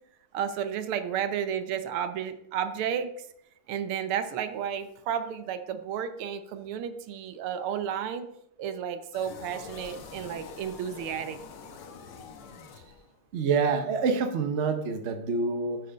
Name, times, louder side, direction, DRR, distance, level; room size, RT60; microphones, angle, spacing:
voice 1, 0.3-3.3 3.7-8.3 8.6-11.4, right 8 dB, 85° right, 10 dB, 1.6 m, -32 dB
sound 1, 9.1-13.3, left 5 dB, 85° left, 1.9 m, -45 dB
voice 2, 13.3-15.8, right 4 dB, 55° right, 7 dB, 0.7 m, -27 dB
6.6 x 6.4 x 5.2 m, 0.77 s
omnidirectional pair, 2.3 m